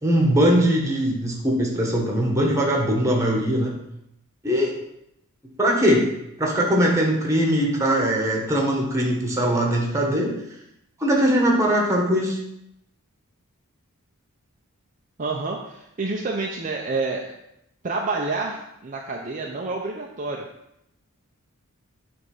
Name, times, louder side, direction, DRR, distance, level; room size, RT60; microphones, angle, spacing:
voice 1, 0.0-3.7 4.4-4.7 5.6-6.1 6.4-10.3 11.0-12.4, equal, 15° right, -1 dB, 1.4 m, -21 dB
voice 2, 15.2-17.3 17.8-20.5, right 3 dB, 35° right, -1 dB, 0.6 m, -28 dB
8.1 x 3.6 x 5.5 m, 0.82 s
head